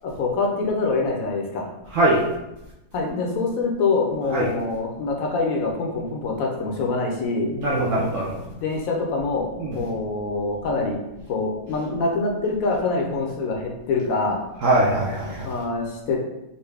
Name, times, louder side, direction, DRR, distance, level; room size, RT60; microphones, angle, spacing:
voice 1, 0.0-1.7 2.9-7.5 8.5-9.5 9.7-11.0 11.3-14.4 15.4-16.2, left 3 dB, 70° left, 0 dB, 1.0 m, -25 dB
voice 2, 7.5-8.4 9.6-9.8 14.6-15.4, right 1 dB, 65° right, -5 dB, 0.9 m, -21 dB
4.1 x 2.2 x 3.2 m, 0.92 s
omnidirectional pair, 1.6 m